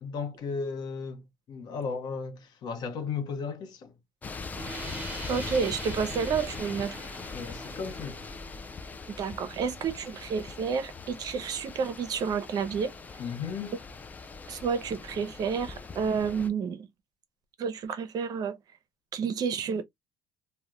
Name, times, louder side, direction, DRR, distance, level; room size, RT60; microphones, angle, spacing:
voice 1, 0.0-3.9 7.3-8.2 13.2-13.8, left 5 dB, 50° left, 0.7 m, -35 dB
sound 1, 4.2-16.5, left 4 dB, 20° left, 0.3 m, -41 dB
sound 2, 4.5-10.0, right 2 dB, 15° right, 1.1 m, -44 dB
voice 2, 5.3-7.0 9.2-12.9 14.5-16.9 17.6-18.6 19.1-19.8, right 6 dB, 50° right, 0.6 m, -30 dB
2.4 x 2.1 x 2.9 m
cardioid pair, 125°, 9 cm